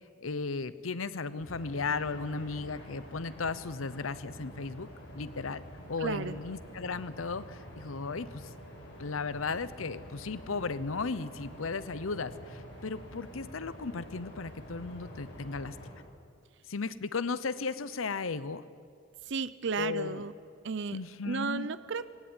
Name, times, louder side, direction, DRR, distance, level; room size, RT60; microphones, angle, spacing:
voice 1, 0.2-4.9 5.1-8.5 9.0-16.0 16.7-18.6 19.8-20.3 20.9-21.7, left 4 dB, 85° left, 15 dB, 0.8 m, -35 dB
sound 1, 1.4-15.9, equal, 60° left, 6.0 m, -48 dB
voice 2, 6.0-6.4 19.3-20.3 20.6-21.0 21.3-22.1, right 5 dB, 60° right, 15 dB, 0.6 m, -33 dB
19.0 x 18.0 x 9.6 m, 2.2 s
head